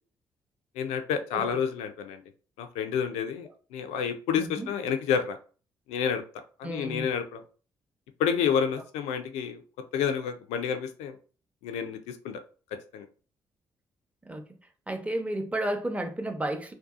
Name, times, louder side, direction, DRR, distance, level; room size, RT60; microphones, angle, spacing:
voice 1, 0.8-2.2 2.6-5.4 5.9-6.2 6.6-7.4 8.2-9.6 9.9-11.1 11.6-12.4 12.9-13.1, left 7 dB, 75° left, 0.4 m, -29 dB
voice 2, 4.4-4.7 6.6-7.1 14.3-14.4 14.9-16.7, right 1 dB, 10° right, 0.7 m, -32 dB
2.6 x 2.2 x 2.4 m
hypercardioid pair, 45°, 11 cm